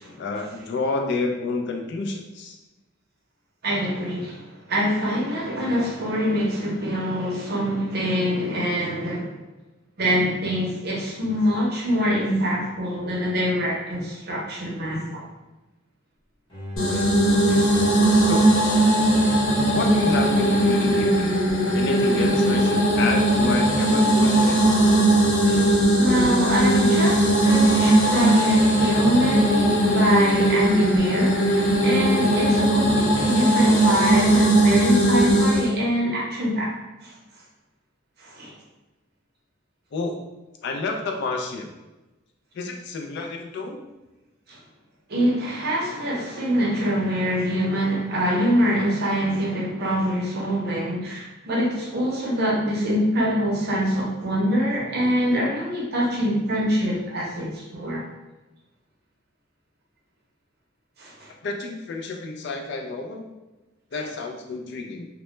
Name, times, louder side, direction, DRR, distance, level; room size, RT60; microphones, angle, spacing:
voice 1, 0.2-2.6 18.1-18.5 19.7-21.4 21.7-24.8 39.9-40.2 40.6-41.7 42.5-43.8 61.4-63.3 63.9-65.1, left 3 dB, 55° left, 2 dB, 0.3 m, -29 dB
voice 2, 3.6-9.4 10.0-15.2 16.9-17.1 17.5-17.8 19.6-19.7 25.5-36.7 37.0-37.1 38.2-38.5 44.5-44.6 45.1-58.0 61.0-61.3, equal, 50° right, -3 dB, 0.6 m, -24 dB
Bowed string instrument, 16.5-23.7, left 1 dB, 20° left, 0.9 m, -41 dB
sound 1, 16.8-35.7, right 1 dB, 85° left, 0.9 m, -19 dB
2.1 x 2.1 x 3.0 m, 1.1 s
head